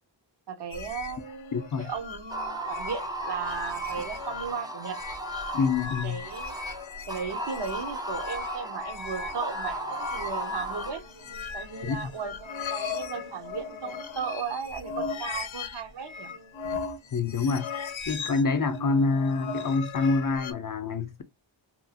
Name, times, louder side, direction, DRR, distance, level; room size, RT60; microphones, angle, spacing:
voice 1, 0.5-5.0 6.0-6.6 7.1-11.0 11.5-16.3, right 6 dB, 65° right, 0.7 m, -36 dB
sound 1, 0.7-20.5, left 5 dB, 90° left, 0.6 m, -38 dB
voice 2, 1.5-1.9 5.5-6.2 11.8-12.1 17.1-17.7 18.1-21.2, left 4 dB, 45° left, 0.5 m, -26 dB
sound 2, 2.3-10.9, right 2 dB, 10° right, 0.5 m, -36 dB
Buzz, 10.2-18.3, right 2 dB, 90° right, 1.0 m, -55 dB
3.0 x 2.3 x 2.7 m
wide cardioid pair, 95°, 46 cm